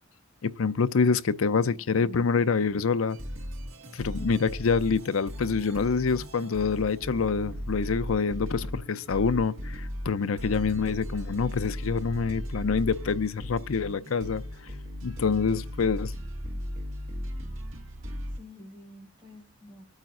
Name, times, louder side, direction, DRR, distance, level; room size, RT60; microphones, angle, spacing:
voice 1, 0.4-3.2 3.9-14.4 15.0-16.1, left 5 dB, 85° left, 0.6 m, -26 dB
sound 1, 3.1-18.4, equal, 75° right, 1.8 m, -37 dB
voice 2, 18.3-19.8, left 1 dB, 20° right, 4.9 m, -50 dB
25.0 x 9.0 x 2.5 m
head